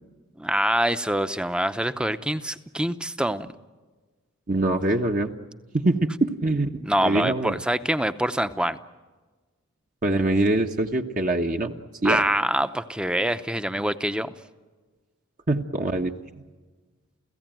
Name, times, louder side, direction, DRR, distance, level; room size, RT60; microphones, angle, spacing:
voice 1, 0.4-3.5 6.8-8.8 12.0-14.3, right 1 dB, 5° right, 11 dB, 0.7 m, -25 dB
voice 2, 4.5-5.3 5.7-6.7 7.0-7.6 10.0-11.7 12.0-12.2 15.5-16.1, right 2 dB, 40° right, 3 dB, 1.0 m, -23 dB
29.5 x 16.5 x 9.2 m, 1.3 s
head